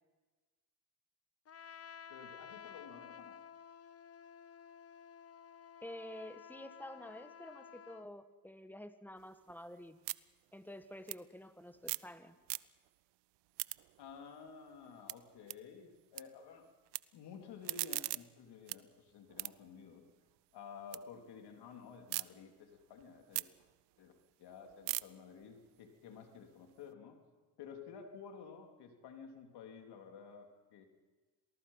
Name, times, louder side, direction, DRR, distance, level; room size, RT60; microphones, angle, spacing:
Trumpet, 1.5-8.1, left 8 dB, 35° left, 0.9 m, -53 dB
voice 1, 2.1-3.4 14.0-16.7 17.1-20.0 20.5-23.5 24.0-24.1 24.4-27.2 27.6-30.8, left 6 dB, 75° left, 4 dB, 3.5 m, -52 dB
voice 2, 5.8-10.0 10.5-12.4, left 1 dB, 5° left, 10 dB, 1.6 m, -49 dB
sound 1, 9.2-12.2 12.4-13.0 13.3-16.2 16.5-17.0 17.4-21.0 21.4-22.2 22.7-26.9, right 21 dB, 80° right, 0.6 m, -44 dB
27.0 x 19.5 x 5.7 m, 1.3 s
supercardioid pair, 80°, 40 cm